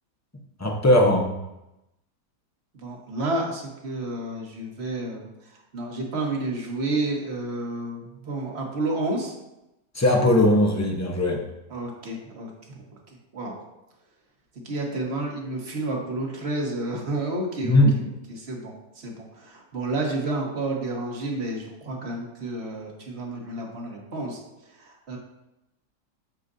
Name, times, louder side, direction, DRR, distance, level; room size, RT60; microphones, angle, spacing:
voice 1, 0.6-1.3 9.9-11.4 17.6-17.9, left 1 dB, 15° left, 1 dB, 0.7 m, -19 dB
voice 2, 2.7-5.3 5.7-9.3 11.7-12.8 13.3-13.5 14.6-24.4 24.8-25.2, right 2 dB, 40° right, 0 dB, 1.5 m, -30 dB
9.1 x 6.8 x 2.7 m, 0.91 s
omnidirectional pair, 1.8 m